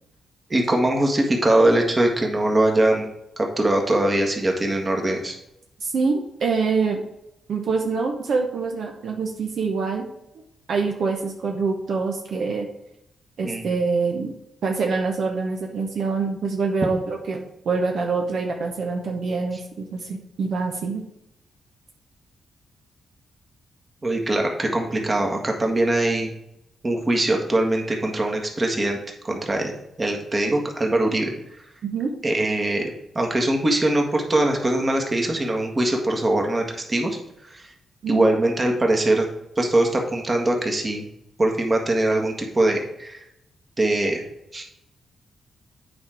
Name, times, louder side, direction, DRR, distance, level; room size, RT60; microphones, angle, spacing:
voice 1, 0.5-3.1 3.4-5.4 13.4-13.7 24.0-26.3 26.8-29.0 29.2-29.7 30.0-31.3 32.2-37.2 37.5-37.6 38.1-39.3 39.6-41.0 41.4-43.2 43.8-44.2 44.5-44.6, right 1 dB, 30° right, 2 dB, 1.7 m, -22 dB
voice 2, 5.8-7.0 7.5-10.1 10.7-12.7 13.4-14.3 14.6-21.0 31.8-32.1 38.0-38.3, right 4 dB, 70° right, 1 dB, 1.0 m, -25 dB
8.6 x 4.4 x 4.9 m, 0.83 s
cardioid pair, 75°, 0 cm